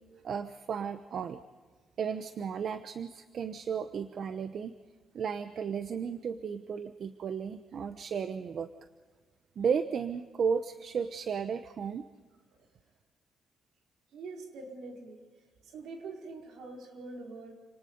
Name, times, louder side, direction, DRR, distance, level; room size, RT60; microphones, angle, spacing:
voice 1, 0.2-1.4 2.0-4.7 5.1-8.7 9.6-12.0, right 6 dB, 55° right, 11 dB, 0.9 m, -34 dB
voice 2, 14.1-15.2 15.6-17.5, right 3 dB, 75° right, 2 dB, 4.5 m, -44 dB
29.0 x 19.5 x 5.3 m, 1.4 s
cardioid pair, 90°, 0 cm